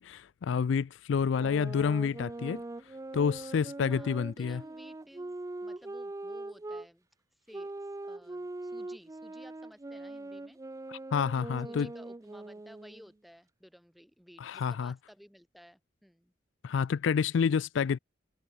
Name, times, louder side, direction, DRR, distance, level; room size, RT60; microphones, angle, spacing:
voice 1, 0.0-2.6 3.1-4.6 10.9-11.9 14.4-14.9 16.6-18.0, left 6 dB, 70° left, 0.4 m, -29 dB
sound 1, 1.3-6.9 7.5-13.1, right 2 dB, 15° right, 0.4 m, -42 dB
voice 2, 3.9-5.4 5.6-10.6 11.6-16.3, equal, ahead, 5.4 m, -56 dB
head